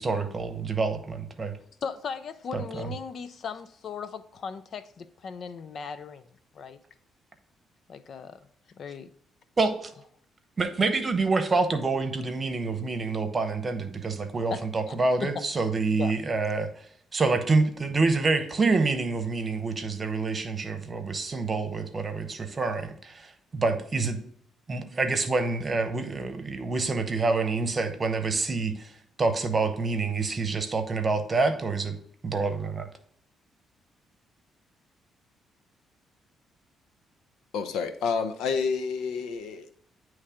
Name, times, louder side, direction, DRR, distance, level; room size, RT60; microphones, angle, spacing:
voice 1, 0.0-1.6 2.5-2.9 9.6-9.9 10.6-16.9 17.1-24.2 24.7-28.9 29.2-32.0 32.2-32.9, right 3 dB, 30° right, 1.0 m, -27 dB
voice 2, 1.8-6.3 6.5-6.8 7.9-8.4 8.7-9.1 14.5-14.6 14.9-15.0 16.0-16.1, left 6 dB, 55° left, 0.5 m, -37 dB
voice 3, 37.5-39.8, left 5 dB, 85° left, 0.7 m, -29 dB
9.7 x 3.2 x 3.6 m
cardioid pair, 90°, 0 cm